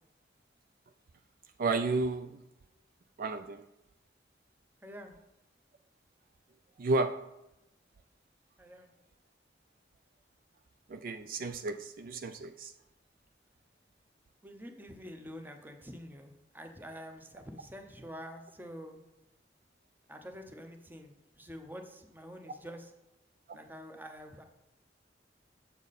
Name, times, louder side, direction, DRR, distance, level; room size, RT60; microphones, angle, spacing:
voice 1, 1.6-2.4 3.2-3.6 6.8-7.2 10.9-12.7 22.5-22.6 23.5-23.6, right 3 dB, 50° right, 8 dB, 0.4 m, -32 dB
voice 2, 4.8-5.1 8.6-8.9 14.4-19.0 20.1-22.9 23.5-24.4, equal, 10° right, 5 dB, 0.7 m, -47 dB
7.3 x 7.0 x 4.1 m, 0.92 s
head